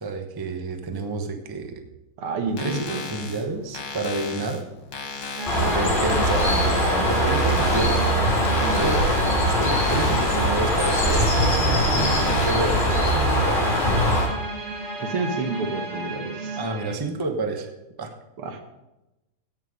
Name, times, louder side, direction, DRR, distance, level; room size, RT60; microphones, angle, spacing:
voice 1, 0.0-1.8 2.6-4.6 5.7-6.5 7.1-8.0 8.8-9.1 9.6-13.7 16.6-17.7 18.0-18.1, right 3 dB, 20° right, 5 dB, 0.5 m, -29 dB
voice 2, 2.2-3.0 8.6-9.0 15.0-16.6 18.4-18.6, right 3 dB, 85° right, 6 dB, 2.1 m, -29 dB
sound 1, 2.5-12.5, left 4 dB, 90° left, 2.6 m, -36 dB
sound 2, 5.4-17.0, right 2 dB, 35° right, 1.5 m, -33 dB
Bird, 5.5-14.3, equal, 30° left, 3.2 m, -21 dB
16.5 x 6.2 x 5.1 m, 0.98 s
omnidirectional pair, 2.4 m